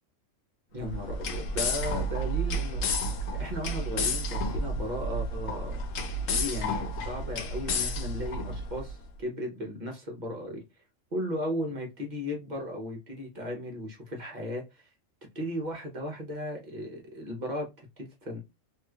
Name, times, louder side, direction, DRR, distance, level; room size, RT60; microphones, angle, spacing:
voice 1, 0.7-3.1 3.4-5.8 6.3-10.8 11.1-14.9 15.3-18.4, equal, 40° right, 1.0 m, -36 dB
sound 1, 0.8-8.9, left 1 dB, 80° left, 1.0 m, -31 dB
3.0 x 2.8 x 2.3 m
omnidirectional pair, 1.4 m